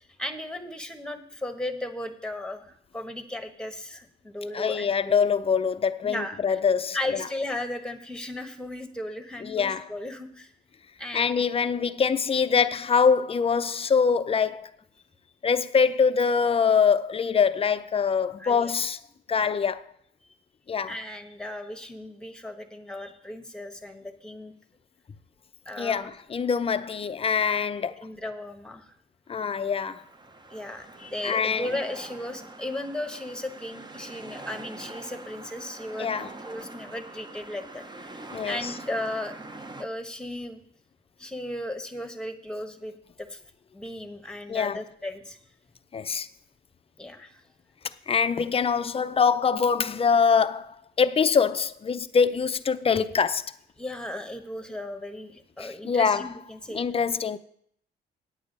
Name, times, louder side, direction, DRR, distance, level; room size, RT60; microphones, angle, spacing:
voice 1, 0.0-5.3 6.0-6.6 6.9-10.5 11.0-11.5 18.4-18.7 19.4-19.5 20.9-24.5 25.7-26.1 28.0-29.0 30.5-38.2 38.4-39.3 39.8-40.6 41.2-43.4 43.7-45.4 47.0-47.4 53.8-56.8, left 1 dB, 5° left, 1.2 m, -36 dB
voice 2, 4.5-7.0 9.4-9.9 11.1-14.7 15.4-19.0 19.3-19.8 20.7-20.9 25.8-28.1 29.3-30.0 31.2-31.7 36.0-36.3 38.3-38.7 44.5-44.8 45.9-46.3 48.1-53.4 55.6-56.3 56.7-57.4, left 6 dB, 30° left, 0.5 m, -24 dB
sound 1, 29.4-39.8, right 2 dB, 20° right, 0.8 m, -44 dB
8.9 x 8.7 x 5.3 m
cardioid pair, 90°, 20 cm